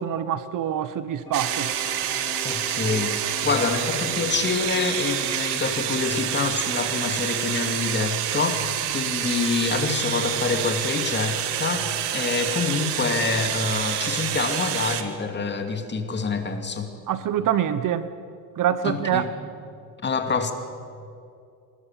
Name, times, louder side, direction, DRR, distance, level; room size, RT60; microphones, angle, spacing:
voice 1, 0.0-1.7 17.1-18.1 18.6-19.3, right 10 dB, 50° right, 14 dB, 1.1 m, -25 dB
sound 1, 1.3-15.2, left 3 dB, 10° left, 4.6 m, -45 dB
sound 2, 1.3-15.0, right 11 dB, 70° right, 2.1 m, -28 dB
voice 2, 2.4-16.9 18.8-19.3 20.0-20.5, left 4 dB, 25° left, 6 dB, 2.6 m, -26 dB
25.0 x 20.0 x 7.5 m, 2.5 s
cardioid pair, 110°, 42 cm